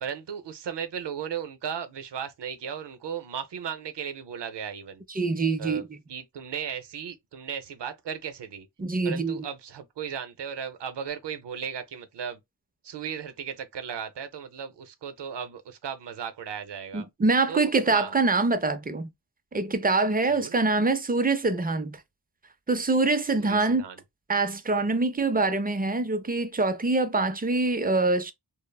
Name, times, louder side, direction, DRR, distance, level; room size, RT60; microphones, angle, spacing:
voice 1, 0.0-5.0 5.6-8.7 9.0-12.4 12.8-17.1 17.5-18.1 20.3-20.6 23.3-24.0, right 8 dB, 80° right, 0.6 m, -36 dB
voice 2, 5.1-6.0 8.8-9.4 16.9-19.1 19.5-22.0 22.7-23.8 24.3-28.3, right 3 dB, 25° right, 0.4 m, -24 dB
3.2 x 2.0 x 2.2 m
wide cardioid pair, 105°, 41 cm